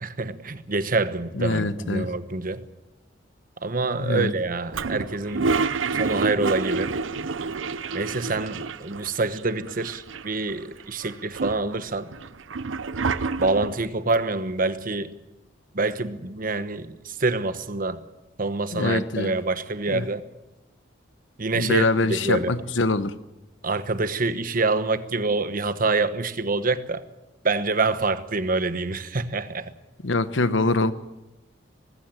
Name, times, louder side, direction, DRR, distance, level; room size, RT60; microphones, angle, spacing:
voice 1, 0.0-2.7 3.6-5.5 5.9-7.0 7.9-12.1 13.4-15.2 15.7-18.0 18.4-20.3 21.4-22.5 23.6-27.0 27.4-29.7, right 3 dB, 45° right, 1.1 m, -26 dB
voice 2, 1.3-2.1 4.0-4.3 18.7-19.3 19.9-20.1 21.6-23.1 30.0-30.9, left 2 dB, 75° left, 1.1 m, -24 dB
Toilet flush, 4.7-9.1 9.4-9.5 9.7-10.5 11.0-13.8, right 4 dB, 90° right, 0.8 m, -28 dB
19.5 x 15.5 x 8.9 m
head